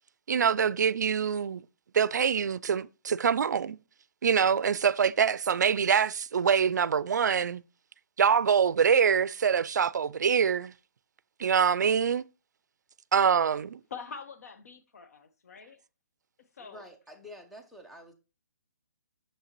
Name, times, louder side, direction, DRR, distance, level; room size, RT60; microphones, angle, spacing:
voice 1, 0.3-1.6 1.9-3.8 4.2-7.6 8.2-10.7 11.4-12.2 13.1-13.8, right 7 dB, 90° right, 0.4 m, -25 dB
voice 2, 13.9-15.8 16.4-16.8, left 6 dB, 60° left, 0.9 m, -45 dB
voice 3, 16.6-18.1, left 1 dB, ahead, 0.6 m, -48 dB
6.4 x 6.4 x 3.0 m
hypercardioid pair, 165°, 9 cm